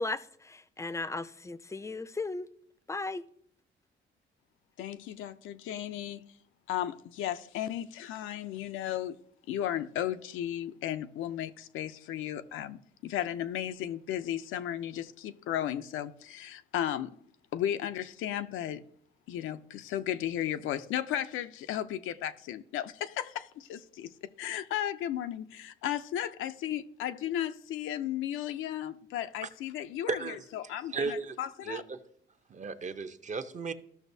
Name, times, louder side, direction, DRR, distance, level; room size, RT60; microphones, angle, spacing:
voice 1, 0.0-2.5 2.9-3.2, left 3 dB, 15° left, 0.4 m, -36 dB
voice 2, 4.8-6.3 6.7-9.2 9.5-17.2 17.5-18.8 19.3-31.8, left 11 dB, 85° left, 0.5 m, -35 dB
voice 3, 30.1-31.4 31.6-32.0 32.5-33.7, right 5 dB, 40° right, 0.7 m, -36 dB
14.0 x 6.0 x 2.7 m
cardioid pair, 90°, 20 cm